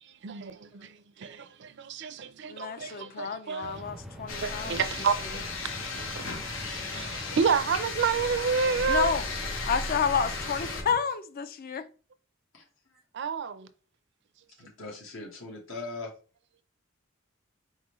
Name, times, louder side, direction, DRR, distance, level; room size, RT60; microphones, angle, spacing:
voice 1, 0.2-3.8 4.4-5.1 6.0-6.3 6.7-9.1 13.1-13.7, right 6 dB, 60° right, 0.5 m, -29 dB
voice 2, 2.5-4.8 8.9-9.3 9.7-11.9, left 6 dB, 50° left, 0.5 m, -30 dB
sound 1, 3.6-11.0, equal, ahead, 0.5 m, -44 dB
sound 2, 4.3-10.8, left 3 dB, 90° left, 1.0 m, -35 dB
voice 3, 12.5-13.0 14.6-16.1, left 3 dB, 70° left, 1.2 m, -41 dB
4.3 x 3.6 x 3.0 m
head